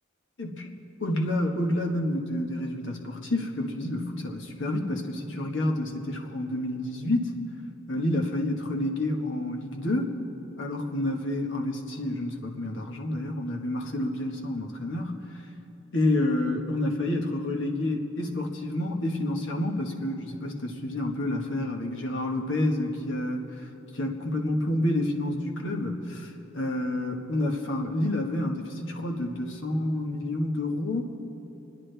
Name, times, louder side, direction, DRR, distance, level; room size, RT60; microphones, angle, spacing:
voice 1, 0.4-0.7 1.0-7.4 7.9-10.2 10.6-15.1 15.9-23.5 23.9-31.0, left 1 dB, 70° left, 1 dB, 1.4 m, -29 dB
29.0 x 9.9 x 3.4 m, 2.9 s
head